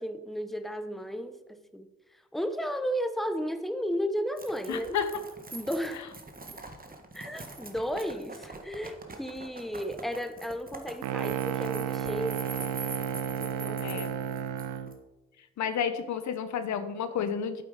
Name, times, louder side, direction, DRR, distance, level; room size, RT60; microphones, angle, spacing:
voice 1, 0.0-1.9 2.3-5.0 5.5-6.1 7.1-12.4 13.4-14.0, equal, ahead, 10 dB, 0.9 m, -34 dB
sound 1, 4.4-14.9, right 3 dB, 30° right, 1.6 m, -44 dB
voice 2, 4.7-5.3 13.8-14.1 15.6-17.6, left 7 dB, 75° left, 11 dB, 0.9 m, -31 dB
sound 2, 11.0-15.0, right 9 dB, 90° right, 0.7 m, -32 dB
8.5 x 7.8 x 5.0 m, 1.1 s
supercardioid pair, 55°, 29 cm